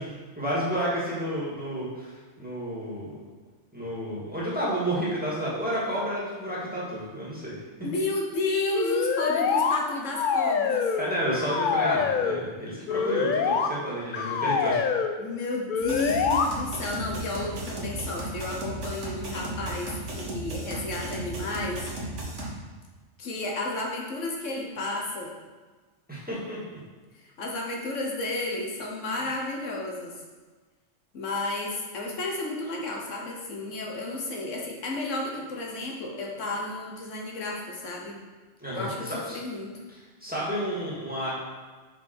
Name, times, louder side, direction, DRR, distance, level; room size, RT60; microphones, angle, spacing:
voice 1, 0.0-3.2 3.7-7.6 11.0-14.8 26.1-26.8 38.6-39.4 40.2-41.3, equal, 5° right, -7 dB, 1.7 m, -31 dB
voice 2, 7.8-11.0 15.2-21.9 23.2-25.3 27.2-30.2 31.1-38.2 38.7-39.7, left 2 dB, 85° left, -1 dB, 1.4 m, -32 dB
sound 1, 8.7-9.8 10.1-11.1 11.4-12.4 12.9-13.7 14.1-15.1 15.7-16.5, left 6 dB, 60° left, 0.5 m, -25 dB
sound 2, 15.8-22.5, right 1 dB, 75° right, 1.5 m, -35 dB
5.4 x 5.3 x 4.4 m, 1.3 s
omnidirectional pair, 1.3 m